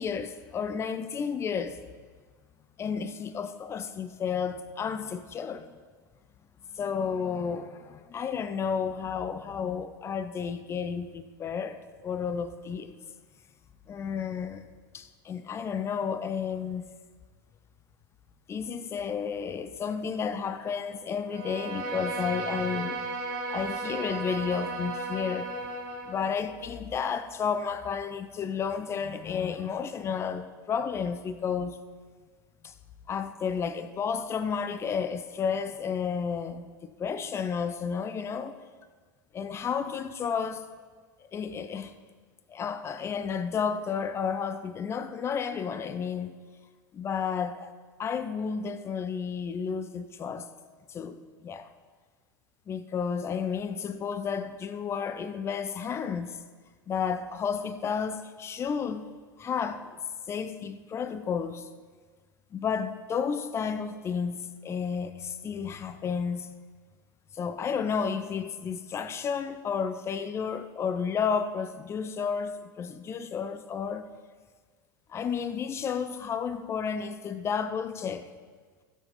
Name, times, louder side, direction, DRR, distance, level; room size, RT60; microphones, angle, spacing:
voice 1, 0.0-1.8 2.8-5.7 6.7-13.0 13.9-14.7 14.9-16.9 18.5-23.0 23.5-25.5 26.0-31.8 32.6-32.7 33.1-38.6 39.3-40.7 41.3-42.0 42.5-46.4 46.9-47.7 48.0-50.5 50.9-51.7 52.7-56.4 56.9-59.1 59.4-60.0 60.3-61.7 62.5-66.5 67.3-74.1 75.1-78.3, left 6 dB, 20° left, 0.6 m, -32 dB
Bowed string instrument, 21.3-26.2, right 2 dB, 50° right, 2.1 m, -34 dB
16.0 x 7.0 x 4.1 m
figure-of-eight pair, 85°, 12 cm